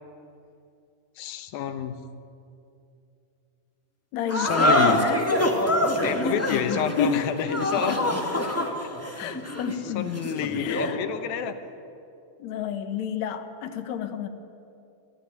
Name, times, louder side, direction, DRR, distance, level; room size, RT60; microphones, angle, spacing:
voice 1, 1.2-2.0 4.3-5.1 6.0-8.0 8.8-8.9 9.8-11.6, left 8 dB, 90° left, 9 dB, 2.9 m, -29 dB
voice 2, 4.1-5.3 6.5-7.2 7.6-8.0 9.2-10.2 10.6-11.0 12.4-14.3, left 8 dB, 60° left, 7 dB, 2.1 m, -30 dB
sound 1, 4.3-11.0, left 1 dB, 10° left, 0.8 m, -25 dB
23.0 x 14.5 x 9.4 m, 2.6 s
omnidirectional pair, 4.1 m